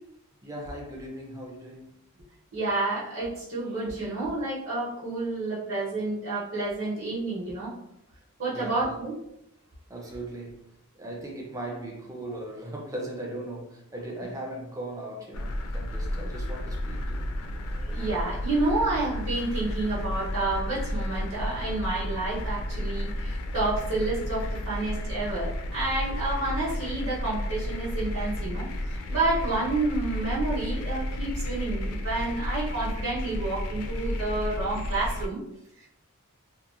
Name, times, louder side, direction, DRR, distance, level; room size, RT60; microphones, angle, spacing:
voice 1, 0.4-1.9 8.5-9.0 9.9-17.3, right 1 dB, 15° right, -1 dB, 0.4 m, -38 dB
voice 2, 2.5-7.7 8.4-9.1 17.7-35.4 35.8-35.9, right 2 dB, 55° right, -10 dB, 0.8 m, -30 dB
sound 1, 15.3-35.3, left 1 dB, 75° left, 0.3 m, -32 dB
2.8 x 2.2 x 2.4 m, 0.82 s
head